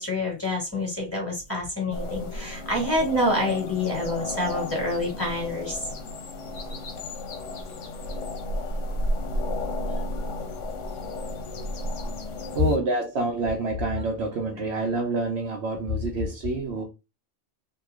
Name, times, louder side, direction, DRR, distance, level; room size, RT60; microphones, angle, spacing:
voice 1, 0.0-5.8, left 1 dB, 10° left, 1.6 m, -27 dB
sound 1, 1.9-12.8, left 1 dB, 85° left, 1.0 m, -32 dB
voice 2, 12.5-16.8, right 3 dB, 65° right, 0.9 m, -27 dB
3.0 x 2.2 x 3.5 m
omnidirectional pair, 1.3 m